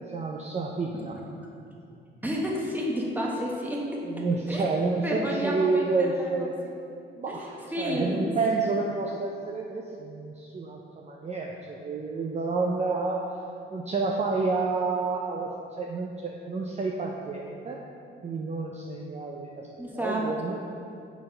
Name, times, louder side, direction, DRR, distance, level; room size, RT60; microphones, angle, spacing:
voice 1, 0.1-1.2 4.1-6.5 7.2-13.3 13.7-15.5 15.8-17.8 18.2-19.7 19.9-20.6, right 3 dB, 35° right, 0 dB, 0.6 m, -29 dB
voice 2, 2.2-3.8 4.5-4.7 5.0-5.8 6.2-6.5 7.7-8.3 19.8-20.2, equal, 10° right, -3 dB, 1.4 m, -30 dB
6.6 x 4.1 x 5.4 m, 2.5 s
cardioid pair, 90°, 20 cm